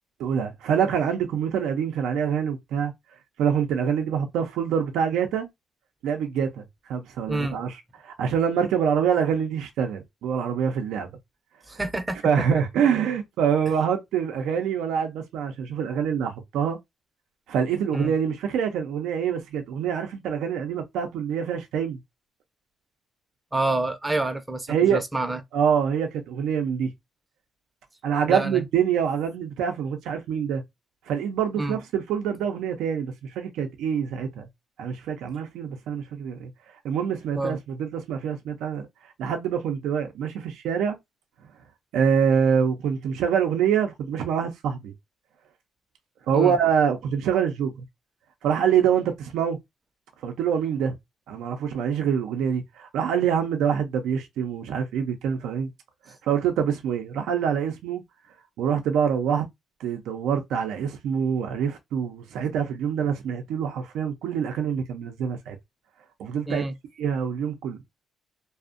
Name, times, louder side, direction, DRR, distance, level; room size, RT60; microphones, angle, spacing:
voice 1, 0.2-2.9 3.4-5.5 6.0-11.1 11.7-11.8 12.2-16.8 17.5-22.0 24.7-25.0 25.5-26.9 28.0-30.6 31.1-34.5 34.8-36.5 36.8-41.0 41.9-44.9 46.3-47.7 48.4-49.6 50.2-50.9 51.3-55.7 56.1-58.0 58.6-59.4 59.8-65.6 66.2-66.6 67.0-67.8, right 7 dB, 85° right, 0.4 m, -25 dB
voice 2, 7.3-7.6 11.7-12.6 17.9-18.1 23.5-25.4 28.3-28.6 31.6-31.8 37.3-37.6 46.3-46.6 66.5-66.7, right 2 dB, 15° right, 0.5 m, -28 dB
2.5 x 2.0 x 2.4 m
cardioid pair, 90°, 0 cm